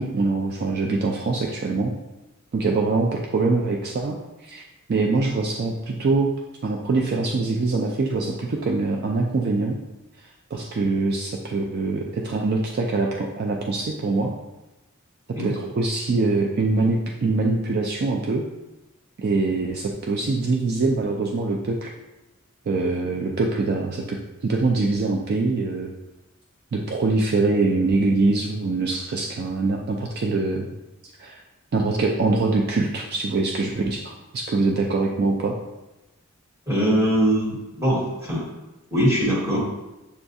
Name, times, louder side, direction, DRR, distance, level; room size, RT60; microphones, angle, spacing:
voice 1, 0.0-1.9 2.5-4.2 4.4-6.3 6.6-9.8 10.5-14.3 15.4-18.5 19.2-21.9 22.7-25.9 26.7-30.7 31.2-31.4 31.7-35.5, right 3 dB, 45° right, 0 dB, 0.3 m, -23 dB
voice 2, 36.7-38.5 38.9-39.6, equal, 15° right, -7 dB, 1.3 m, -22 dB
6.8 x 2.3 x 2.6 m, 1.0 s
head